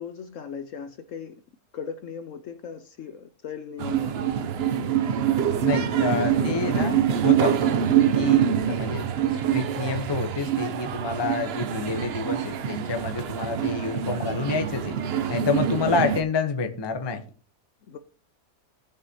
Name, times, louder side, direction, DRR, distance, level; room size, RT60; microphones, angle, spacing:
voice 1, 0.0-1.4 1.7-4.3 5.6-6.8 7.5-7.8 17.8-18.0, left 6 dB, 65° left, 10 dB, 0.9 m, -37 dB
sound 1, 3.8-16.2, right 9 dB, 65° right, 0.6 m, -25 dB
voice 2, 5.6-7.6 8.2-15.0 15.3-17.2, left 4 dB, 25° left, 6 dB, 0.5 m, -28 dB
17.0 x 6.4 x 2.7 m, 0.42 s
omnidirectional pair, 1.7 m